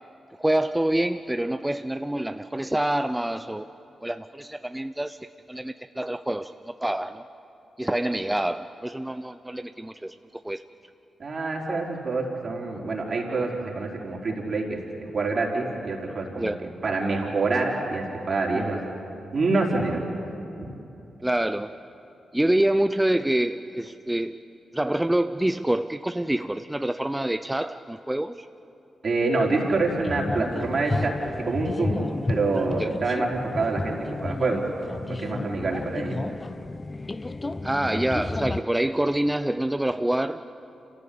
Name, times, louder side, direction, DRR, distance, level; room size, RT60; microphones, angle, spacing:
voice 1, 0.4-3.7 4.0-5.2 5.5-7.2 7.8-10.6 16.4-16.7 18.5-18.7 21.2-21.8 22.3-24.4 24.7-28.5 32.8-32.9 37.6-40.4, right 1 dB, 15° right, 10 dB, 0.7 m, -26 dB
voice 2, 11.2-14.8 15.1-16.5 16.8-18.8 19.3-20.2 20.6-20.7 29.0-31.1 31.4-34.6 35.1-36.2, right 3 dB, 55° right, -1 dB, 4.5 m, -26 dB
sound 1, 29.4-38.6, left 2 dB, 35° left, 0.9 m, -32 dB
27.5 x 16.0 x 8.7 m, 2.8 s
supercardioid pair, 40°, 0 cm